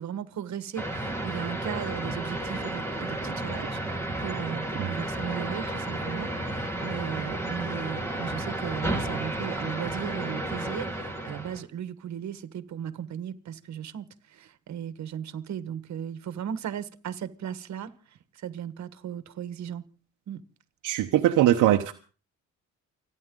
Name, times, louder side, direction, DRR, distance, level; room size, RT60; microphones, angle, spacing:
voice 1, 0.0-3.8 4.2-17.9 18.4-19.8 20.3-20.4, right 9 dB, 65° right, 1.5 m, -36 dB
sound 1, 0.8-11.6, right 1 dB, 10° left, 3.8 m, -32 dB
voice 2, 20.8-21.9, right 13 dB, 85° right, 1.0 m, -21 dB
29.5 x 10.0 x 3.8 m
cardioid pair, 90°, 30 cm